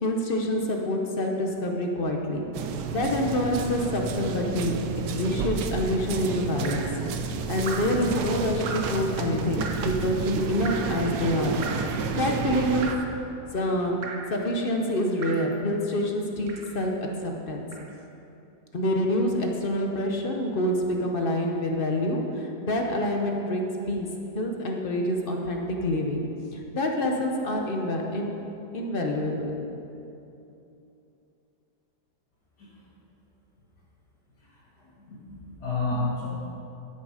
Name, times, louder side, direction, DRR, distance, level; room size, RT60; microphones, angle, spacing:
voice 1, 0.0-2.5 2.9-4.7 5.1-6.9 7.5-11.6 12.1-13.1 13.5-14.0 14.3-16.9 17.2-17.7 18.7-24.1 24.3-28.3 28.7-29.6, left 1 dB, 45° left, 1 dB, 0.8 m, -27 dB
sound 1, 2.5-13.0, right 5 dB, 90° right, 1.3 m, -31 dB
Drip, 6.6-7.0 7.6-8.0 8.7-9.0 9.6-9.9 10.7-11.0 11.6-12.0 12.8-13.2 14.0-14.4 15.2-15.5 16.5-16.8 17.7-17.9, right 4 dB, 55° right, 1.1 m, -37 dB
voice 2, 35.1-36.3, left 3 dB, 70° left, -8 dB, 2.3 m, -30 dB
12.5 x 6.8 x 4.9 m, 2.8 s
omnidirectional pair, 1.8 m